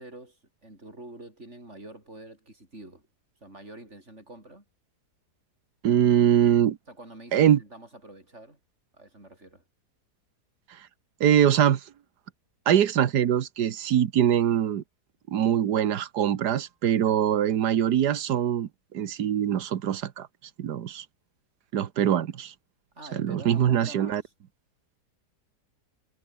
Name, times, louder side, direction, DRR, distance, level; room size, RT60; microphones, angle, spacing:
voice 1, 0.0-3.1 3.4-4.7 6.9-8.6 8.9-9.6 17.0-17.2 23.0-24.3, right 2 dB, 45° right, 7.1 m, -46 dB
voice 2, 5.8-6.8 7.3-7.6 11.2-11.8 12.7-14.8 15.3-18.7 18.9-20.3 20.6-21.0 21.7-22.5 23.2-24.2, right 10 dB, 85° right, 1.7 m, -23 dB
omnidirectional pair, 1.7 m